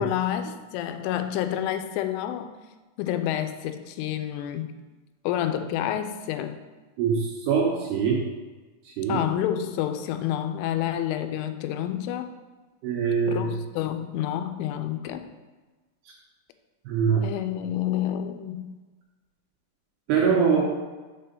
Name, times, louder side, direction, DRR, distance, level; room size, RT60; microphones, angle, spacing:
voice 1, 0.0-2.5 3.0-4.7 5.2-6.6 9.1-12.3 13.3-15.2 17.2-18.7 20.3-20.6, left 11 dB, 90° left, 8 dB, 3.1 m, -29 dB
voice 2, 7.0-8.2 9.0-9.2 12.8-13.5 16.9-17.3 20.1-20.6, right 6 dB, 75° right, -2 dB, 2.5 m, -23 dB
6.8 x 4.4 x 5.2 m, 1.3 s
omnidirectional pair, 5.5 m